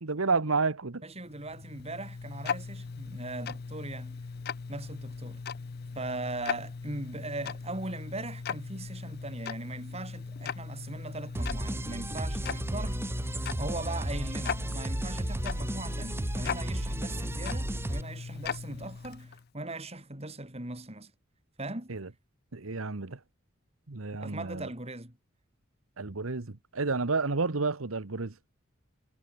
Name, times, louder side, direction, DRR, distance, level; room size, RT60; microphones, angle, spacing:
voice 1, 0.0-1.0 21.9-22.1 22.5-23.2 23.9-24.7 26.0-28.3, right 4 dB, 90° right, 1.2 m, -30 dB
voice 2, 1.0-4.2 4.7-5.4 6.0-13.0 13.6-21.1 21.6-21.9 24.2-25.2, right 2 dB, 30° right, 3.9 m, -39 dB
Tick-tock, 1.2-19.5, left 5 dB, 50° left, 0.5 m, -39 dB
sound 1, 11.3-18.0, right 1 dB, 10° right, 1.0 m, -33 dB
head